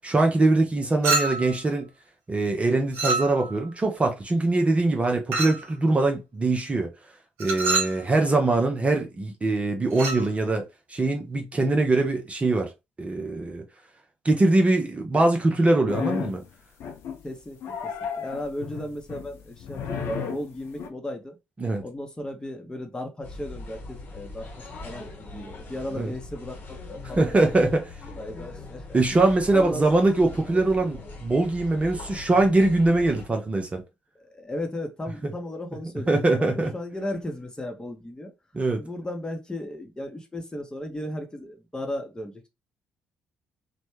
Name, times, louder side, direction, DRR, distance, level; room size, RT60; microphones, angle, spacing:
voice 1, 0.0-1.9 2.3-6.9 7.4-10.6 10.9-12.7 13.0-13.6 14.2-16.4 21.6-21.8 26.0-26.1 27.2-27.9 28.9-33.8 35.2-35.3 36.1-36.7 38.5-38.8, right 2 dB, 25° right, 0.6 m, -22 dB
Chink clink, 1.0-1.6 2.9-3.6 5.3-5.7 7.4-8.0 9.9-10.3, right 3 dB, 60° right, 0.9 m, -26 dB
sound 1, 15.9-16.4 16.8-17.3 17.6-20.9, left 6 dB, 55° left, 0.6 m, -33 dB
voice 2, 17.2-21.4 21.8-27.6 28.2-29.3 29.5-29.8 34.2-38.3 38.7-42.5, left 1 dB, 15° left, 0.8 m, -36 dB
sound 2, 23.2-33.3, left 3 dB, 40° left, 1.0 m, -41 dB
3.1 x 2.1 x 3.1 m
figure-of-eight pair, 45°, 5 cm